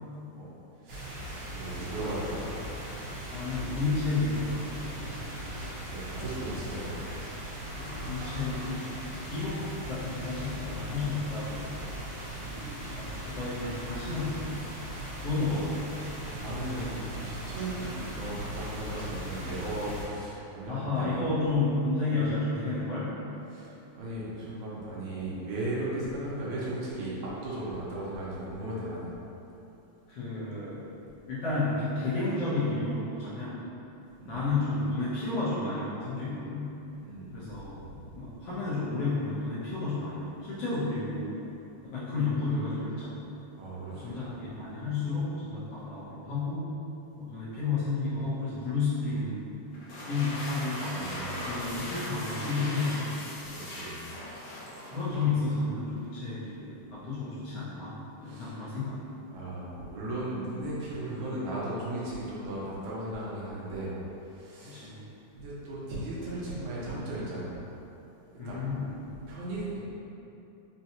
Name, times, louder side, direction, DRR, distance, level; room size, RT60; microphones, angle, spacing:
voice 1, 0.8-1.2 1.4-2.5 5.9-7.0 14.9-15.6 16.2-21.3 23.5-29.1 34.2-34.4 37.0-37.9 43.5-44.4 50.9-51.5 53.5-54.1 58.2-58.5 59.3-63.9 64.2-65.0 65.3-67.6 68.5-68.6 69.3-69.8, right 1 dB, 80° right, -7 dB, 2.1 m, -36 dB
sound 1, 0.9-20.0, right 1 dB, 55° right, 1.6 m, -39 dB
voice 2, 3.3-5.5 7.7-8.8 9.3-11.8 12.4-14.7 15.2-15.9 20.7-23.2 30.1-30.8 31.3-33.6 34.2-36.8 37.3-37.8 38.1-41.3 41.8-43.3 43.9-46.7 47.2-49.4 50.0-50.9 51.4-53.1 54.9-59.0 64.6-65.0 68.4-69.0, left 3 dB, 70° left, -12 dB, 1.6 m, -31 dB
sound 2, 49.7-55.3, left 1 dB, 85° left, 1.2 m, -39 dB
5.4 x 2.2 x 2.8 m, 2.9 s
omnidirectional pair, 3.4 m